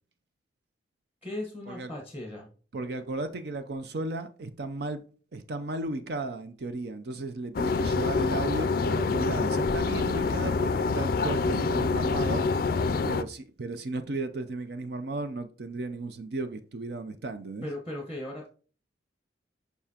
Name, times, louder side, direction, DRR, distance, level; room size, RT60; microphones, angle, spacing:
voice 1, 1.2-2.5 17.6-18.5, left 1 dB, 10° right, 1.1 m, -38 dB
voice 2, 2.7-5.0 5.3-12.5 13.1-17.7, right 2 dB, 60° right, 0.5 m, -35 dB
sound 1, 7.5-13.2, left 4 dB, 50° left, 0.4 m, -26 dB
7.0 x 5.4 x 2.8 m
head